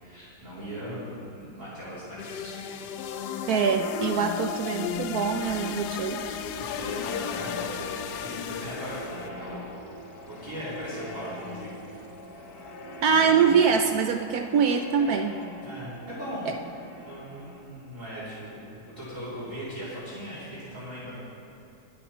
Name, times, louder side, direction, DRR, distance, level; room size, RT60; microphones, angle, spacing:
voice 1, 0.0-2.9 6.6-9.6 10.2-12.0 13.3-13.5 15.6-16.5 17.0-21.1, equal, 40° right, -11 dB, 3.7 m, -39 dB
sound 1, 2.2-9.3, left 8 dB, 70° left, 1.0 m, -34 dB
sound 2, 2.7-19.3, left 1 dB, 55° left, 1.5 m, -44 dB
voice 2, 3.5-6.4 13.0-15.4, right 6 dB, 75° right, 6 dB, 0.8 m, -24 dB
24.0 x 9.0 x 3.1 m, 3.0 s
omnidirectional pair, 2.1 m